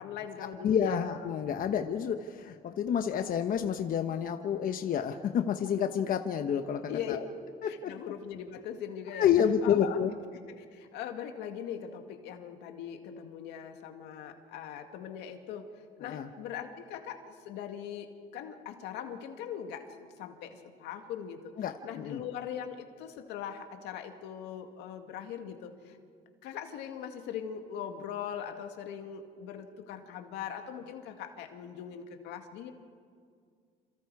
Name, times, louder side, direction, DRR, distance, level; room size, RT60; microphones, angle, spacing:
voice 1, 0.0-1.0 6.9-7.2 7.6-9.3 9.6-10.0 10.5-15.7 16.0-19.8 20.2-21.5 21.8-26.0 26.4-32.7, left 9 dB, 90° left, 5 dB, 2.2 m, -41 dB
voice 2, 0.6-6.8 7.1-7.2 7.6-7.9 9.1-10.1 16.0-16.3 21.6-22.2, left 8 dB, 55° left, 6 dB, 1.1 m, -29 dB
27.5 x 27.5 x 4.9 m, 2.1 s
cardioid pair, 110°, 17 cm